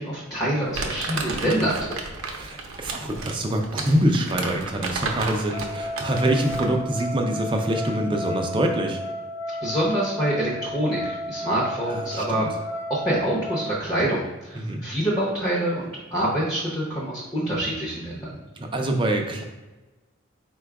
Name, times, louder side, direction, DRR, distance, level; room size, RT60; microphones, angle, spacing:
voice 1, 0.0-2.0 9.6-18.3, right 1 dB, 15° left, -7 dB, 0.7 m, -26 dB
Crumpling crinkling, 0.7-6.8, right 4 dB, 80° right, 0.6 m, -32 dB
voice 2, 2.3-9.0 11.9-12.5 14.6-14.8 18.6-19.4, right 1 dB, 25° right, 2 dB, 0.4 m, -25 dB
sound 1, 5.5-13.7, equal, 70° left, 0.7 m, -33 dB
4.3 x 2.3 x 4.6 m, 1.1 s
head